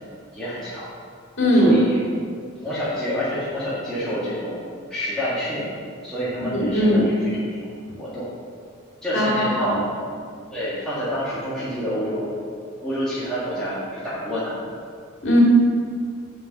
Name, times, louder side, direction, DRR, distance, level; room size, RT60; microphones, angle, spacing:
voice 1, 0.3-0.9 1.5-2.0 2.6-4.6 4.9-5.8 6.0-7.6 8.0-8.3 9.0-9.8 10.5-12.3 12.8-14.6, equal, 5° left, -11 dB, 1.7 m, -28 dB
voice 2, 1.4-1.8 6.5-7.0 9.1-9.8 15.2-15.4, equal, 55° left, -4 dB, 2.6 m, -18 dB
9.1 x 4.8 x 6.7 m, 2.2 s
head